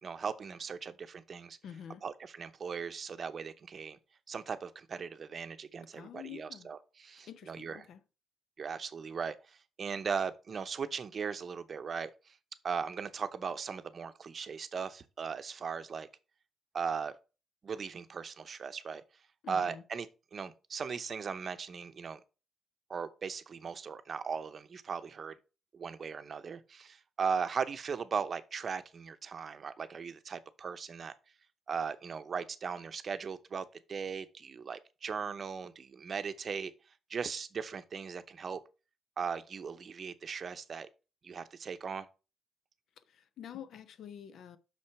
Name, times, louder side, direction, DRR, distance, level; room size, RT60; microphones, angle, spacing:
voice 1, 0.0-1.6 2.0-4.0 4.3-7.8 8.6-12.3 12.6-16.1 16.7-17.2 17.6-19.0 19.5-20.1 20.3-22.2 22.9-25.3 25.7-31.1 31.7-36.7 37.1-38.6 39.2-40.9 41.2-42.1, right 6 dB, 45° right, 0.7 m, -38 dB
voice 2, 1.6-2.0 5.9-6.7 7.2-8.0 19.4-19.8 43.1-44.6, left 9 dB, 70° left, 0.7 m, -47 dB
6.0 x 5.7 x 4.6 m
cardioid pair, 90°, 0 cm